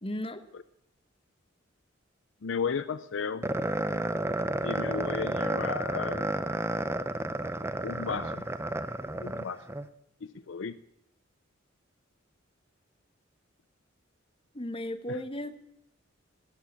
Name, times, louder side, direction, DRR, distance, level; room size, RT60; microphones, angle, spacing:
voice 1, 0.0-0.4 14.5-15.5, left 1 dB, 30° left, 11 dB, 1.0 m, -35 dB
voice 2, 2.4-3.5 4.6-6.3 7.8-8.4 9.2-9.6 10.2-10.8 15.1-15.2, left 5 dB, 65° left, 15 dB, 0.5 m, -34 dB
sound 1, 3.4-9.8, right 1 dB, 15° right, 0.6 m, -31 dB
19.0 x 8.3 x 8.5 m, 0.77 s
head